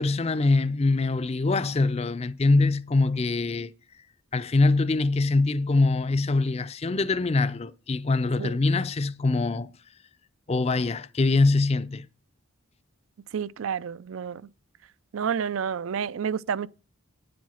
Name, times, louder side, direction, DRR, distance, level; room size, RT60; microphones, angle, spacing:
voice 1, 0.0-3.7 4.3-9.7 10.5-12.1, left 3 dB, 30° left, 0.4 m, -23 dB
voice 2, 13.3-14.4 15.1-16.7, right 7 dB, 70° right, 0.4 m, -29 dB
9.7 x 7.7 x 5.6 m
head